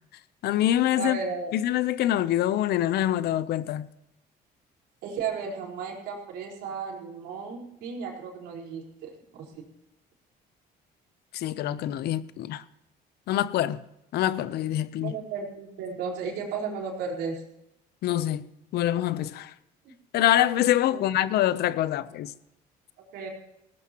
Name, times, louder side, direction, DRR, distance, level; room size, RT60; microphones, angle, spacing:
voice 1, 0.4-1.2 1.5-3.9 11.3-12.6 13.3-13.8 14.1-15.1 18.0-18.5 18.7-19.5 20.1-22.3, left 12 dB, 70° left, 0.8 m, -25 dB
voice 2, 1.0-1.5 5.0-9.7 15.0-17.4 19.8-19.9 20.9-21.0 23.1-23.3, right 5 dB, 90° right, 4.5 m, -34 dB
19.0 x 17.0 x 3.0 m
cardioid pair, 110°, 17 cm